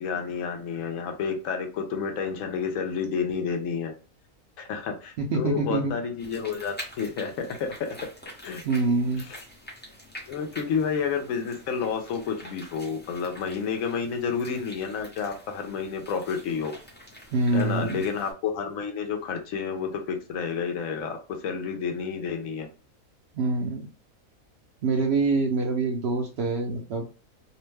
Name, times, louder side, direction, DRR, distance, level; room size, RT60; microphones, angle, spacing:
voice 1, 0.0-3.9 4.6-8.0 8.4-8.6 9.2-9.3 10.3-16.7 17.5-22.7, left 6 dB, 75° left, 4 dB, 1.0 m, -30 dB
voice 2, 5.2-6.0 8.6-9.2 17.3-18.1 23.3-23.8 24.8-27.1, right 3 dB, 65° right, 1 dB, 0.7 m, -25 dB
sound 1, 6.2-18.3, equal, 15° left, 0.4 m, -46 dB
2.7 x 2.1 x 3.2 m, 0.34 s
omnidirectional pair, 1.5 m